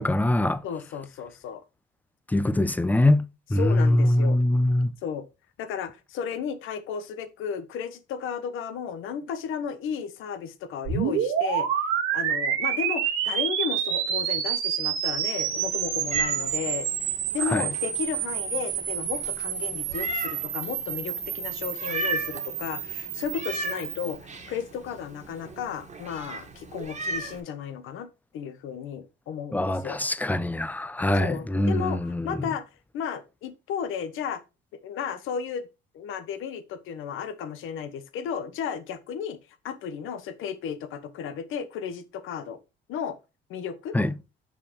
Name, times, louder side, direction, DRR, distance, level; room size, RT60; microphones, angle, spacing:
voice 1, 0.0-0.6 2.3-4.9 17.5-17.7 29.5-32.5 43.9-44.1, left 1 dB, 10° left, 0.5 m, -23 dB
voice 2, 0.6-1.6 3.6-4.4 5.0-5.2 5.6-11.7 12.1-16.9 17.3-30.0 31.1-32.6 32.9-34.4 34.8-35.7 35.9-39.4 39.6-42.6 42.9-43.2 43.5-44.0, left 7 dB, 75° left, 1.0 m, -34 dB
sound 1, 10.8-24.2, right 9 dB, 80° right, 1.6 m, -29 dB
Meow, 15.4-27.4, right 3 dB, 35° right, 1.6 m, -36 dB
6.3 x 5.6 x 3.0 m
cardioid pair, 105°, 21 cm